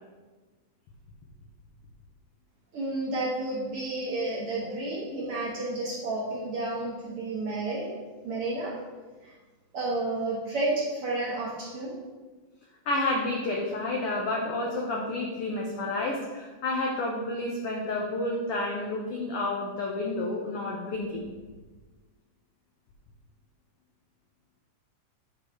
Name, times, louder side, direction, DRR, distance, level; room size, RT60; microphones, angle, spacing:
voice 1, 2.7-8.8 9.2-9.3 9.7-12.0, right 2 dB, 60° right, -4 dB, 1.6 m, -31 dB
voice 2, 12.9-21.3, left 2 dB, 85° left, -1 dB, 1.3 m, -30 dB
9.5 x 5.4 x 3.6 m, 1.3 s
omnidirectional pair, 3.8 m